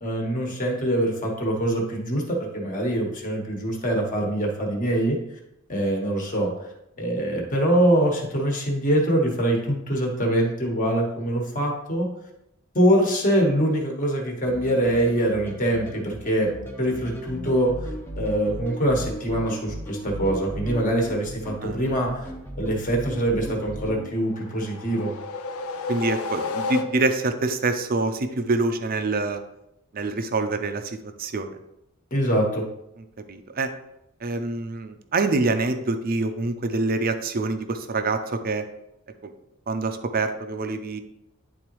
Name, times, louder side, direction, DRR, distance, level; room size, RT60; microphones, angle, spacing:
voice 1, 0.0-5.2 5.7-6.5 7.0-12.1 12.7-16.5 16.8-17.7 18.2-22.2 22.6-25.1 32.1-32.6, right 1 dB, 35° left, 0 dB, 1.4 m, -24 dB
sound 1, 14.5-24.1, equal, 10° left, 0.8 m, -36 dB
sound 2, 24.3-27.4, left 4 dB, 75° left, 0.5 m, -32 dB
voice 2, 25.9-29.4 29.9-31.6 33.3-33.7 34.2-38.6 39.2-39.3 39.7-41.0, right 3 dB, 40° right, 8 dB, 0.5 m, -26 dB
10.0 x 3.9 x 3.1 m, 0.85 s
head